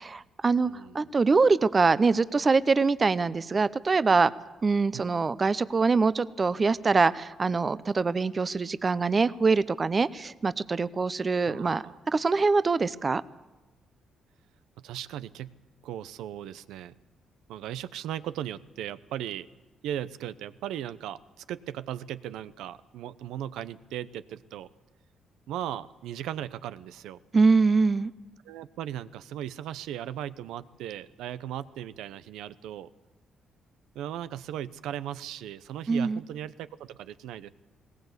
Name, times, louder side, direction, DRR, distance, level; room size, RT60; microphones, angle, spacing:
voice 1, 0.0-4.3 4.6-13.2 27.3-28.1 35.9-36.2, right 4 dB, 30° right, 16 dB, 0.6 m, -24 dB
voice 2, 0.6-1.1 4.9-5.0 11.5-12.0 14.8-15.5 15.8-16.9 17.5-19.5 19.8-24.7 25.5-27.2 28.4-32.9 33.9-37.5, right 11 dB, 90° right, 15 dB, 0.7 m, -37 dB
19.5 x 18.0 x 8.2 m, 1.1 s
cardioid pair, 90°, 0 cm